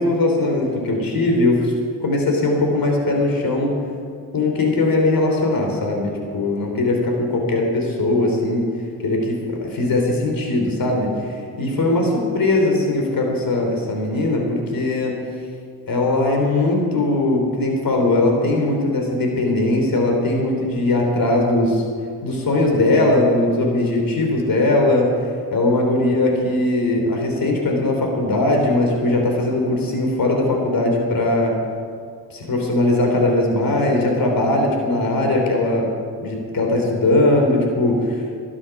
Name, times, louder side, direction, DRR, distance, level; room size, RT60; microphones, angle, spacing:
voice 1, 0.0-1.7 2.0-3.8 4.3-8.7 9.0-12.1 12.3-15.2 15.9-21.8 22.2-25.1 25.5-31.5 32.3-35.9 36.2-38.4, left 2 dB, 50° left, 1 dB, 3.4 m, -20 dB
12.5 x 12.0 x 6.0 m, 2.2 s
hypercardioid pair, 55°, 44 cm